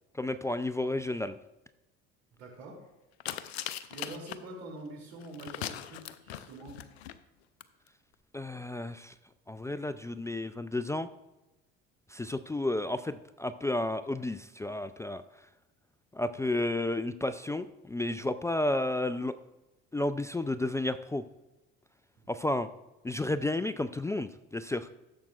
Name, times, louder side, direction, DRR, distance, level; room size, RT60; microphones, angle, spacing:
voice 1, 0.1-1.4 8.3-9.1 9.5-11.1 12.1-15.2 16.1-19.3 19.9-21.2 22.3-22.7 23.0-24.9, left 2 dB, 10° left, 12 dB, 0.3 m, -32 dB
voice 2, 2.4-2.8 3.9-6.8 22.2-22.3, right 2 dB, 80° right, -2 dB, 2.8 m, -45 dB
sound 1, 3.2-4.4 5.2-7.1 7.6-7.7 7.9-8.0, left 11 dB, 85° left, 0.6 m, -39 dB
15.0 x 7.3 x 2.4 m, 1.0 s
hypercardioid pair, 60°, 31 cm